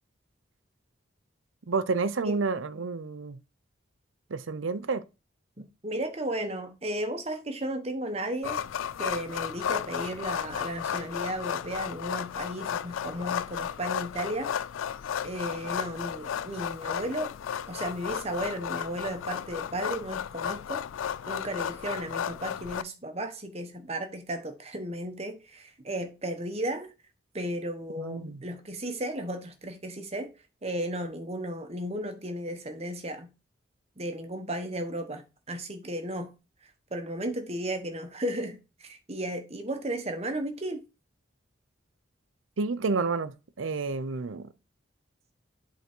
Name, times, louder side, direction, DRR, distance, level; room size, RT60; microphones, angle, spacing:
voice 1, 1.7-3.4 4.3-5.0 28.0-28.4 42.6-44.5, right 4 dB, 80° right, 0.6 m, -30 dB
voice 2, 5.8-8.6 9.0-14.5 15.2-17.3 17.7-20.8 21.3-26.9 27.3-30.3 30.6-33.3 34.0-36.3 36.9-40.8, right 1 dB, 30° right, 1.1 m, -34 dB
sound 1, 8.4-22.8, left 8 dB, 80° left, 0.4 m, -34 dB
8.2 x 3.8 x 4.4 m
head